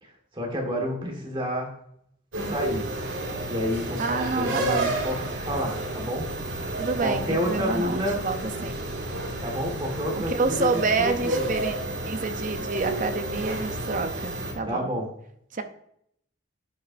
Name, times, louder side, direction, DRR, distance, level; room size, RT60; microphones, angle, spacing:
voice 1, 0.3-1.7 2.5-2.9 3.4-6.3 7.0-8.2 8.6-8.7 9.4-11.4 14.6-15.1, equal, 25° right, 0 dB, 1.6 m, -29 dB
sound 1, 2.3-14.5, right 2 dB, 70° right, 2.1 m, -31 dB
voice 2, 4.0-4.9 6.8-8.8 10.1-11.8 12.0-14.9 15.5-15.6, right 4 dB, 40° right, 8 dB, 0.7 m, -28 dB
11.0 x 5.4 x 2.6 m, 0.71 s
head